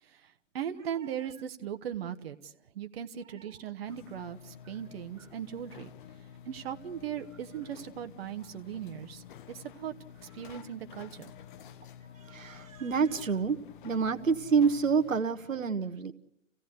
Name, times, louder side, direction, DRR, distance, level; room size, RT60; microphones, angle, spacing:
voice 1, 0.0-5.9 6.4-9.9 10.3-11.3, right 9 dB, 50° right, 8 dB, 1.4 m, -39 dB
sound 1, 3.9-15.2, left 9 dB, 40° left, 1.0 m, -50 dB
voice 2, 12.1-13.6 13.8-16.1, right 5 dB, 85° right, 7 dB, 1.4 m, -28 dB
28.5 x 16.5 x 8.2 m, 0.80 s
hypercardioid pair, 135°, 39 cm